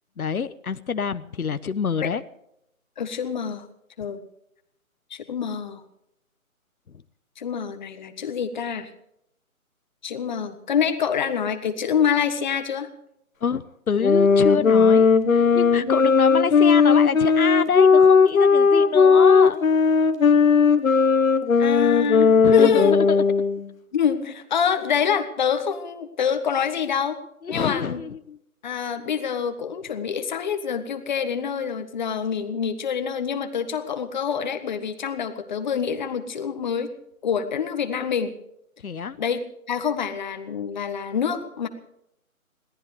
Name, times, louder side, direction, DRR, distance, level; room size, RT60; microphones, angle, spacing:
voice 1, 0.2-2.2 13.4-19.7 22.4-23.2 27.4-28.4 38.8-39.2, left 6 dB, 85° left, 13 dB, 1.0 m, -27 dB
voice 2, 3.0-3.6 4.0-4.2 5.1-5.8 7.4-8.9 10.0-12.9 21.6-23.0 23.9-27.2 27.5-28.0 28.6-36.9 37.2-38.3 39.2-39.4 39.7-41.7, left 7 dB, 35° left, 9 dB, 1.5 m, -26 dB
sound 1, 14.0-23.7, left 5 dB, 70° left, 1.3 m, -17 dB
22.0 x 17.5 x 3.3 m, 0.78 s
figure-of-eight pair, 160°, 42 cm